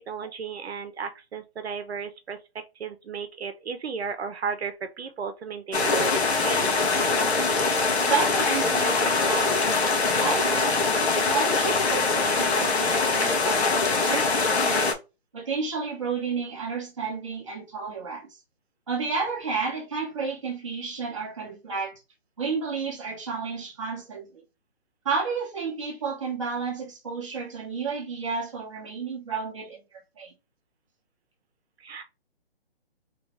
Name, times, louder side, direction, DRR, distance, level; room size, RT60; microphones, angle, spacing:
voice 1, 0.0-6.7 31.8-32.0, right 5 dB, 75° right, 0.8 m, -34 dB
sound 1, 5.7-14.9, left 3 dB, 85° left, 1.1 m, -23 dB
voice 2, 8.0-10.8 11.1-14.9 15.3-18.3 18.9-22.0 22.4-24.4 25.0-30.3, right 5 dB, 30° right, 0.9 m, -31 dB
3.0 x 2.7 x 3.1 m
hypercardioid pair, 180°, 32 cm